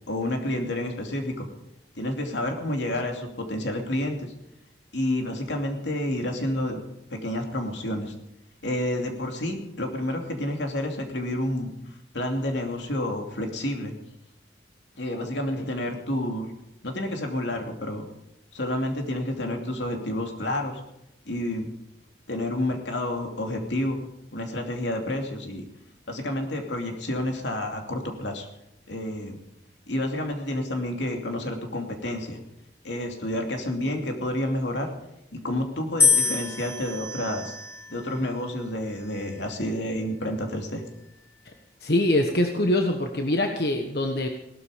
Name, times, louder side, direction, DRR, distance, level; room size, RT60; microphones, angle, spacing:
voice 1, 0.1-1.5 1.9-4.3 4.9-6.8 7.1-8.1 8.6-11.7 12.1-13.9 15.0-16.5 16.8-18.0 18.5-20.8 21.2-21.7 22.3-25.6 26.1-28.5 28.9-29.4 29.9-32.4 32.8-34.9 35.3-37.6 37.9-40.8, left 1 dB, 85° left, 3 dB, 2.8 m, -29 dB
sound 1, 36.0-38.2 39.0-39.5, left 5 dB, 15° left, 1.5 m, -26 dB
voice 2, 41.8-44.3, left 1 dB, 60° left, 4 dB, 1.3 m, -24 dB
18.0 x 12.5 x 5.1 m, 0.85 s
head